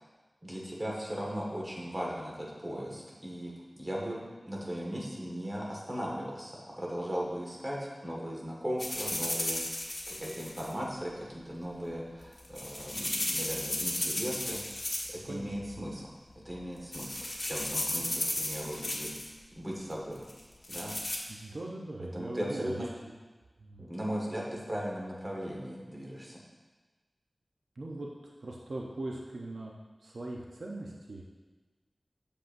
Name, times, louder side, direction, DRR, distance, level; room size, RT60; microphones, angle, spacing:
voice 1, 0.4-4.2 4.5-9.6 10.1-14.6 15.1-19.1 19.6-20.2 20.7-21.0 22.0-22.9 23.8-26.4, equal, 30° right, -3 dB, 1.6 m, -37 dB
sound 1, 8.8-10.7 12.2-15.3 15.5-16.0 16.5-16.6 16.9-19.3 20.3-21.2, left 1 dB, 40° left, 1.1 m, -35 dB
voice 2, 15.2-15.7 21.3-22.9 23.6-23.9 27.8-31.2, right 2 dB, 80° right, -2 dB, 0.7 m, -41 dB
7.8 x 6.8 x 2.6 m, 1.3 s
wide cardioid pair, 70°, 0 cm